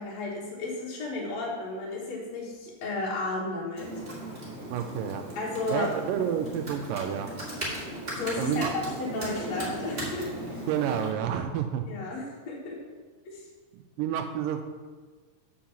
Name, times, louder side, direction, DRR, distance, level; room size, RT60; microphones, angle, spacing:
voice 1, 0.0-3.9 5.4-5.9 8.1-10.3 11.9-12.8 13.3-13.5, left 2 dB, 55° left, -5 dB, 2.3 m, -33 dB
Computer keyboard, 3.8-11.1, right 1 dB, 25° right, 1.5 m, -37 dB
voice 2, 4.7-5.3 5.7-7.3 8.4-8.7 10.7-11.9 13.7-14.6, right 9 dB, 85° right, 6 dB, 2.0 m, -29 dB
7.5 x 4.6 x 7.1 m, 1.4 s
omnidirectional pair, 4.3 m